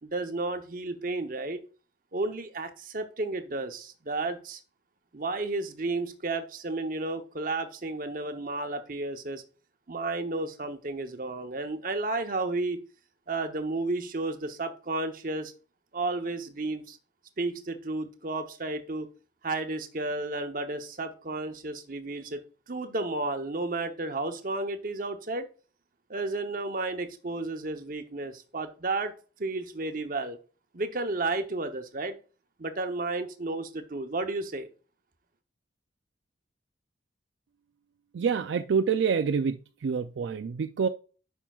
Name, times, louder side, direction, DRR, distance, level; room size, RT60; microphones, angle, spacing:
voice 1, 0.0-1.6 2.1-4.6 5.1-9.4 9.9-12.8 13.3-15.5 15.9-17.0 17.4-19.1 19.4-25.5 26.1-29.1 29.4-30.4 30.7-32.2 32.6-34.7, right 2 dB, 45° right, 0.9 m, -32 dB
voice 2, 38.1-40.9, right 6 dB, 70° right, 0.4 m, -27 dB
9.0 x 5.7 x 2.4 m
head